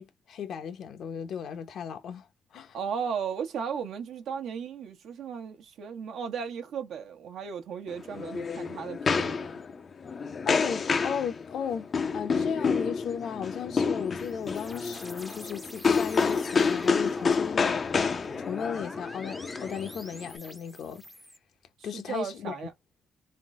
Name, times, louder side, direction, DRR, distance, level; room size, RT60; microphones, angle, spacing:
voice 1, 0.0-2.3 2.5-2.8 10.5-17.9 18.4-21.1 21.8-22.7, left 7 dB, 65° left, 0.8 m, -35 dB
voice 2, 2.7-9.6 21.8-22.7, right 7 dB, 75° right, 1.0 m, -35 dB
sound 1, 7.9-20.4, left 5 dB, 45° left, 0.5 m, -29 dB
sound 2, 13.8-21.4, equal, ahead, 0.6 m, -47 dB
3.7 x 2.0 x 3.6 m
cardioid pair, 90°, 0 cm